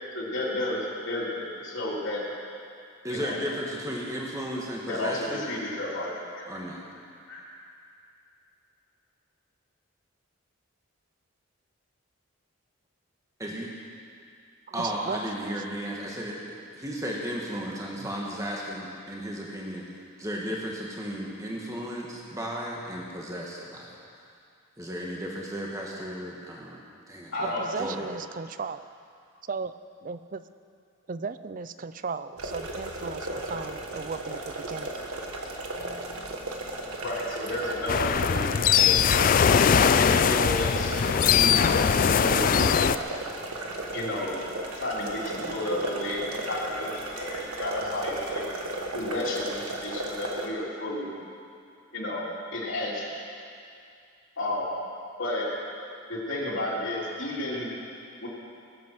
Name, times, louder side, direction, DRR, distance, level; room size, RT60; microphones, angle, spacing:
voice 1, 0.1-2.2 3.1-3.4 4.9-6.4 7.3-7.4 27.3-27.6 37.0-39.1 39.9-40.9 41.2-42.8 43.9-44.5 44.8-48.4 48.9-51.1 51.9-53.1 54.4-54.7 55.2-55.5 56.1-57.7 58.2-58.3, left 1 dB, 65° left, -6 dB, 3.3 m, -32 dB
voice 2, 3.0-5.5 6.5-6.8 13.4-13.7 14.7-16.4 16.7-19.8 20.2-24.0 24.8-26.8 27.1-28.1, equal, 15° right, -3 dB, 1.5 m, -34 dB
voice 3, 14.7-15.8 18.0-18.1 27.4-28.9 29.5-29.7 30.0-30.4 31.1-35.0, right 5 dB, 40° right, 13 dB, 0.4 m, -36 dB
sound 1, 32.4-50.5, right 2 dB, 85° right, 1.6 m, -35 dB
sound 2, 32.8-49.3, left 1 dB, 10° left, 3.1 m, -51 dB
sound 3, 37.9-43.0, left 7 dB, 40° left, 0.3 m, -21 dB
21.0 x 8.5 x 6.2 m, 2.4 s
head